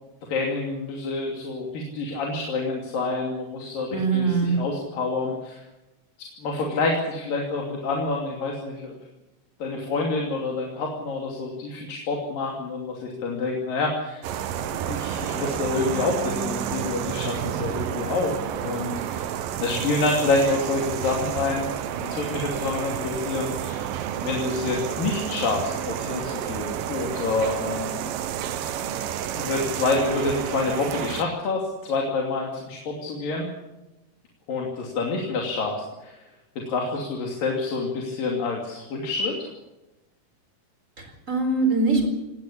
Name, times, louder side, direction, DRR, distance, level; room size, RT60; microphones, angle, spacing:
voice 1, 0.3-5.6 6.4-9.0 9.6-14.2 14.9-19.3 19.6-21.7 22.0-23.9 24.2-28.0 28.6-28.7 29.3-33.5 34.5-36.2 36.6-39.5, left 3 dB, 85° left, 0 dB, 4.6 m, -27 dB
voice 2, 3.9-4.6 41.0-42.1, right 3 dB, 20° right, 5 dB, 4.4 m, -22 dB
sound 1, 14.2-31.2, right 10 dB, 85° right, 2.8 m, -30 dB
18.5 x 18.5 x 8.6 m, 0.99 s
omnidirectional pair, 3.8 m